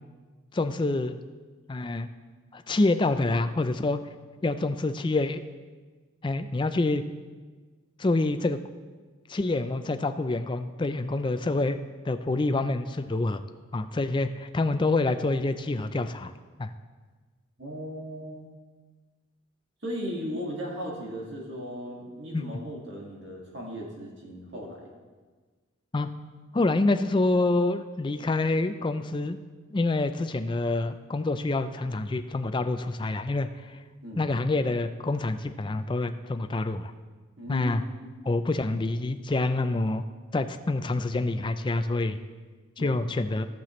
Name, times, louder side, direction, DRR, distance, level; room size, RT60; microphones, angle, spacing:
voice 1, 0.5-1.2 1.7-2.1 2.5-4.0 4.4-5.4 6.2-7.0 8.0-8.6 9.3-11.8 12.1-13.4 13.7-16.3 16.6-16.7 22.3-22.4 25.9-26.1 26.5-29.4 29.7-33.8 34.2-36.9 37.5-37.8 38.3-40.0 40.3-42.2 42.8-43.5, left 2 dB, 25° left, 9 dB, 0.4 m, -27 dB
voice 2, 17.6-18.5 19.8-24.9 34.0-34.3 37.4-38.1 42.8-43.0, equal, 55° right, -2 dB, 2.0 m, -37 dB
16.5 x 5.9 x 3.1 m, 1.4 s
head